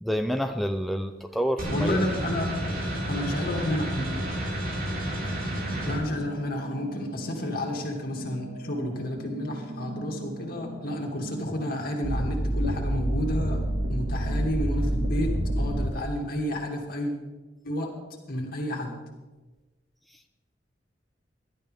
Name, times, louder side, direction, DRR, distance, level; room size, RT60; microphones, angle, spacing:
voice 1, 0.0-2.0, equal, ahead, 5 dB, 0.4 m, -28 dB
sound 1, 1.6-6.0, right 1 dB, 55° right, 3.6 m, -30 dB
voice 2, 1.7-2.7 3.1-4.1 5.9-13.6 13.9-17.1 17.6-17.9 18.3-19.0, left 1 dB, 55° left, 1 dB, 2.5 m, -31 dB
sound 2, 5.2-15.9, right 1 dB, 75° right, 2.1 m, -31 dB
16.5 x 12.0 x 3.5 m, 1.2 s
head